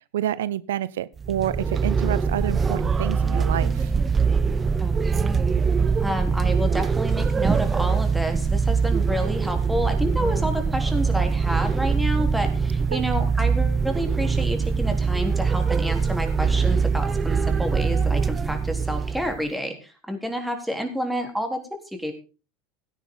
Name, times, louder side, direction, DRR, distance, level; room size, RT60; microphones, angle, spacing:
voice 1, 0.1-3.9 12.9-13.0, right 12 dB, 80° right, 0.5 m, -28 dB
sound 1, 1.2-19.4, right 5 dB, 25° right, 0.8 m, -23 dB
voice 2, 4.8-5.6 6.0-21.6 21.9-22.1, equal, 5° right, 3.8 m, -29 dB
16.5 x 10.0 x 3.9 m
hypercardioid pair, 95°, 0 cm